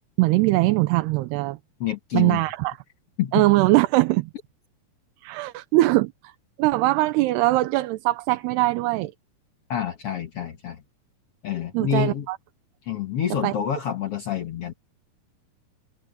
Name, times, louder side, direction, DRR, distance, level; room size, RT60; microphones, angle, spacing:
voice 1, 0.2-1.6 2.1-2.8 3.3-4.3 5.2-6.1 6.6-9.1 11.7-12.4 13.4-13.5, right 19 dB, 80° right, 2.8 m, -21 dB
voice 2, 1.8-2.4 3.2-3.5 9.7-10.8 11.4-12.3 12.8-14.7, left 9 dB, 65° left, 1.4 m, -27 dB
omnidirectional pair, 4.8 m